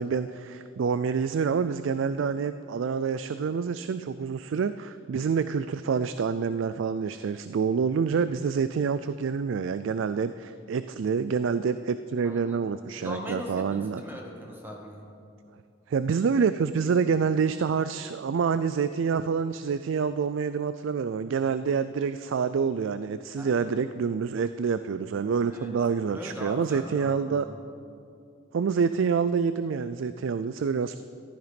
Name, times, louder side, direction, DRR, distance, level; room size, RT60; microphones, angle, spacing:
voice 1, 0.0-14.0 15.9-27.5 28.5-31.0, right 6 dB, 70° right, 13 dB, 0.4 m, -27 dB
voice 2, 12.2-12.6 13.0-15.0 23.4-23.7 25.5-25.7 26.1-27.6, equal, 10° right, 0 dB, 1.8 m, -40 dB
14.5 x 12.5 x 5.2 m, 2.5 s
head